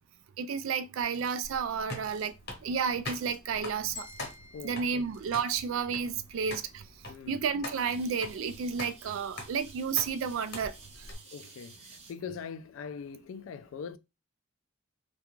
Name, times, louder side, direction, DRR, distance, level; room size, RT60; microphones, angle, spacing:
voice 1, 0.4-2.3 2.6-4.1 4.6-6.9 7.3-10.7 11.0-11.1, right 6 dB, 70° right, 0.3 m, -31 dB
sound 1, 1.0-1.5 2.0-2.3 3.1-3.5 4.0-4.5 5.1-5.5 6.1-6.2 7.7-12.1, right 4 dB, 30° right, 0.6 m, -54 dB
sound 2, 1.4-11.1, left 2 dB, 55° left, 0.9 m, -44 dB
sound 3, 4.0-6.1, left 4 dB, 20° left, 0.6 m, -51 dB
voice 2, 4.5-5.0 7.1-7.4 11.3-14.0, left 6 dB, 70° left, 0.3 m, -42 dB
2.4 x 2.2 x 3.0 m
head